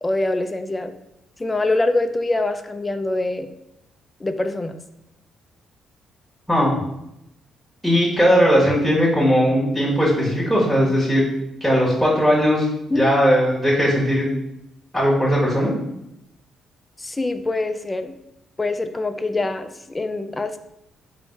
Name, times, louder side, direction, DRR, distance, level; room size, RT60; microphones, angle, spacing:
voice 1, 0.0-0.9 1.4-3.5 4.2-4.8 12.9-13.2 17.0-18.1 18.6-20.6, left 2 dB, 20° left, 9 dB, 0.3 m, -24 dB
voice 2, 7.8-11.2 11.6-12.7 12.9-14.3 14.9-15.7, equal, 5° right, -7 dB, 1.5 m, -18 dB
3.4 x 2.6 x 4.6 m, 0.84 s
cardioid pair, 90°, 0 cm